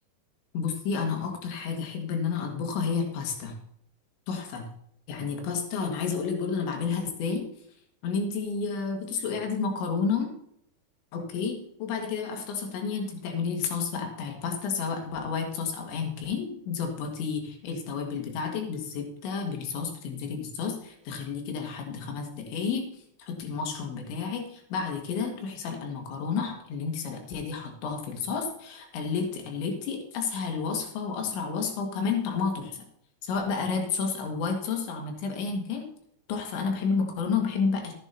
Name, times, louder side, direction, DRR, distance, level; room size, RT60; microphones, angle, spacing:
voice 1, 0.5-3.5 4.3-4.6 5.1-7.5 8.0-10.3 11.1-22.9 23.2-32.8 33.2-35.9 36.3-37.9, left 5 dB, 90° left, 3 dB, 4.0 m, -31 dB
14.0 x 11.0 x 2.8 m, 0.70 s
omnidirectional pair, 5.1 m